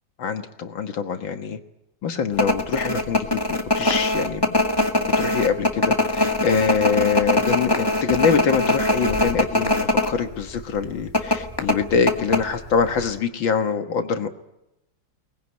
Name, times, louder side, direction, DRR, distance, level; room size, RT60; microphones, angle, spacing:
voice 1, 0.2-1.6 2.0-4.6 5.2-14.3, left 6 dB, 65° left, 7 dB, 2.1 m, -24 dB
sound 1, 2.3-10.1 10.4-10.5 11.1-12.8 13.1-13.2, left 2 dB, 10° left, 1.8 m, -21 dB
22.0 x 20.0 x 9.7 m, 0.91 s
omnidirectional pair, 2.3 m